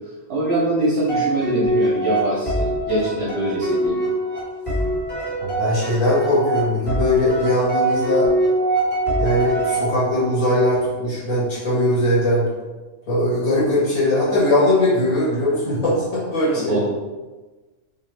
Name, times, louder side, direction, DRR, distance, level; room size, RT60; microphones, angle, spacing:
voice 1, 0.3-4.0 16.7-16.8, right 1 dB, 55° right, -5 dB, 0.8 m, -23 dB
sound 1, 1.1-10.4, right 1 dB, 10° left, 1.3 m, -23 dB
voice 2, 5.4-8.3 9.2-12.4 13.1-16.8, left 1 dB, 85° left, -8 dB, 1.8 m, -20 dB
3.1 x 2.4 x 3.2 m, 1.2 s
omnidirectional pair, 1.4 m